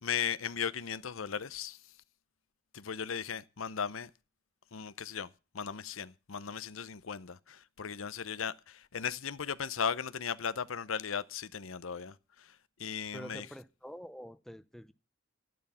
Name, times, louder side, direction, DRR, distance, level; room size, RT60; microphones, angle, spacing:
voice 1, 0.0-1.9 2.7-4.1 4.7-5.3 5.5-13.5, left 7 dB, 90° left, 0.8 m, -37 dB
voice 2, 13.1-14.9, equal, ahead, 0.8 m, -46 dB
12.0 x 11.0 x 5.6 m
head